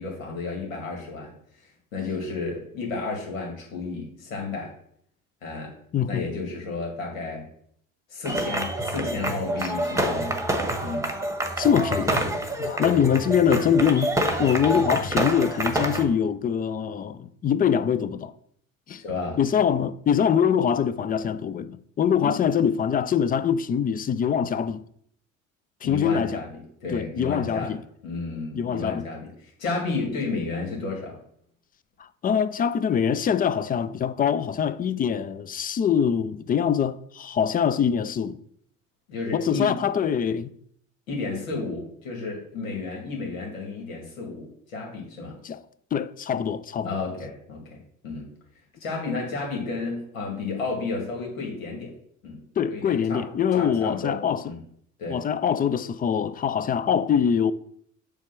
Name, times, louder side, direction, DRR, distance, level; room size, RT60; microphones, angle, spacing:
voice 1, 0.0-1.3 1.6-4.7 5.4-5.7 6.1-7.4 8.1-10.4 10.8-11.1 19.0-19.4 22.2-22.3 25.8-26.5 26.8-27.7 28.0-31.2 39.1-39.8 41.1-45.4 46.8-47.8 48.0-48.3 48.8-51.9 52.2-52.4 52.7-53.3 53.6-54.6 55.0-55.2, left 3 dB, 80° left, 2.5 m, -32 dB
voice 2, 5.9-6.3 9.6-9.7 11.6-12.2 12.6-14.1 14.4-18.3 18.9-19.0 19.4-24.8 25.8-26.4 26.9-27.8 28.6-29.1 32.0-38.4 39.3-40.5 45.4-45.6 45.9-47.0 52.6-54.4 55.1-57.5, left 8 dB, 25° left, 0.4 m, -24 dB
sound 1, 8.3-16.1, right 1 dB, 5° right, 1.2 m, -27 dB
7.4 x 3.4 x 5.9 m
hypercardioid pair, 65°, 40 cm